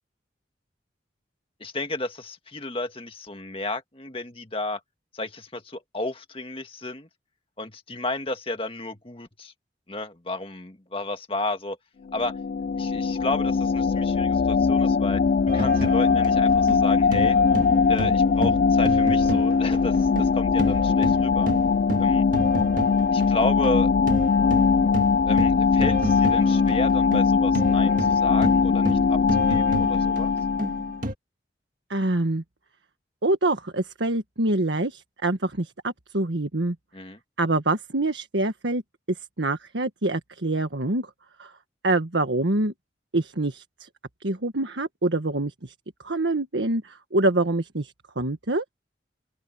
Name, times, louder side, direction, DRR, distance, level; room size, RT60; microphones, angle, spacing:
voice 1, 1.6-4.8 5.1-7.1 7.6-9.5 9.9-11.8 12.1-12.3 12.8-17.4 17.9-21.5 22.0-22.3 23.1-23.9 25.3-30.3 36.9-37.2, left 2 dB, 30° left, 1.8 m, -32 dB
sound 1, 12.1-31.0, left 5 dB, 45° left, 0.3 m, -21 dB
sound 2, 15.5-20.3 20.6-31.1, right 1 dB, 45° right, 2.0 m, -31 dB
voice 2, 31.9-32.4 33.2-36.8 37.4-38.8 39.1-41.1 41.4-41.5 41.8-42.7 43.1-43.9 44.2-45.7 46.0-48.6, right 2 dB, 85° right, 1.6 m, -25 dB
open air
head